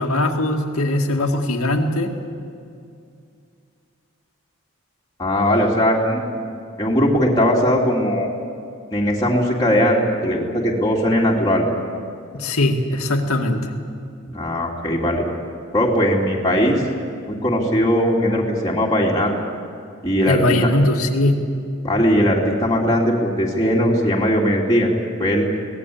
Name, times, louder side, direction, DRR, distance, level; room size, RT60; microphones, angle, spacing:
voice 1, 0.0-2.1 12.3-13.6 20.2-21.4, left 1 dB, 85° left, 3 dB, 2.3 m, -20 dB
voice 2, 5.2-6.3 6.8-8.3 8.9-11.6 14.3-15.2 15.7-16.8 17.3-19.3 20.0-20.4 21.8-24.9 25.2-25.5, equal, 15° left, -4 dB, 2.8 m, -19 dB
23.5 x 18.5 x 8.6 m, 2.4 s
head